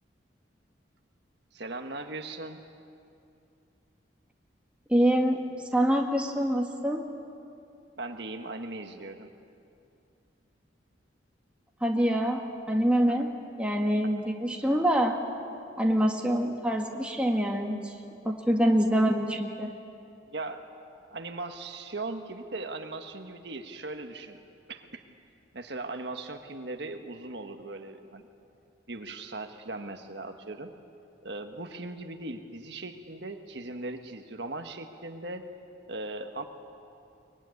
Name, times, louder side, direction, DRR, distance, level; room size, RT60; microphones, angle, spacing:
voice 1, 1.5-2.6 8.0-9.3 13.1-13.2 20.3-20.6 21.1-24.4 24.7-25.0 25.5-28.3 28.9-30.7 31.2-35.4 35.9-36.4, right 2 dB, 65° right, 5 dB, 1.5 m, -38 dB
voice 2, 4.9-5.4 5.7-7.0 11.8-12.4 12.7-13.3 13.6-15.2 15.8-17.9 18.3-19.7, equal, 5° right, 1 dB, 1.8 m, -25 dB
23.5 x 22.5 x 9.7 m, 2.6 s
head